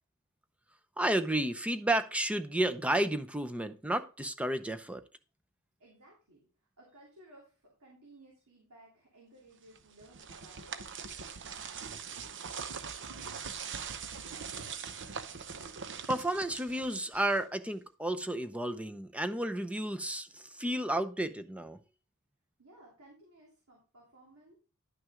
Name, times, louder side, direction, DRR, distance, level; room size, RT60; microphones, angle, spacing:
voice 1, 1.0-5.0 16.1-21.8, right 1 dB, 5° right, 0.6 m, -32 dB
voice 2, 5.8-11.3 22.6-24.5, right 1 dB, 75° right, 3.0 m, -58 dB
sound 1, 9.7-17.6, right 6 dB, 55° right, 0.8 m, -42 dB
11.0 x 6.0 x 3.6 m
head